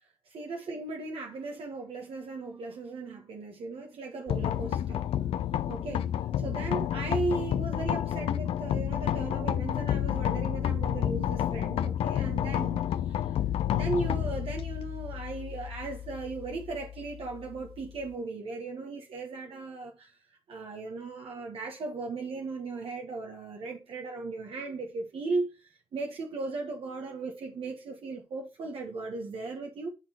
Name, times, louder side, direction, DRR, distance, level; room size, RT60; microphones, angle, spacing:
voice 1, 0.2-5.1 5.7-6.1 6.4-13.4 13.7-20.2 20.5-29.9, right 3 dB, 75° right, 1.4 m, -37 dB
sound 1, 4.3-18.1, left 10 dB, 90° left, 0.5 m, -30 dB
10.5 x 3.9 x 4.4 m
supercardioid pair, 45°, 10 cm